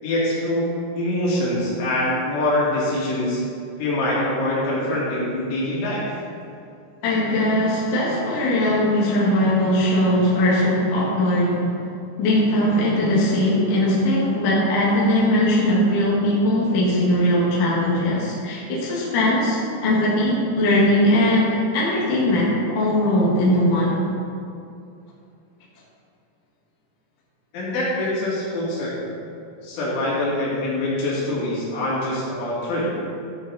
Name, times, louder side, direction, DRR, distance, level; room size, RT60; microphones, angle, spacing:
voice 1, 0.0-3.4 3.8-6.1 27.5-29.2 29.6-32.9, left 1 dB, 70° left, -7 dB, 4.9 m, -24 dB
voice 2, 7.0-11.8 12.2-24.0, left 1 dB, 50° left, -6 dB, 2.7 m, -20 dB
13.5 x 7.2 x 4.2 m, 2.5 s
omnidirectional pair, 6.0 m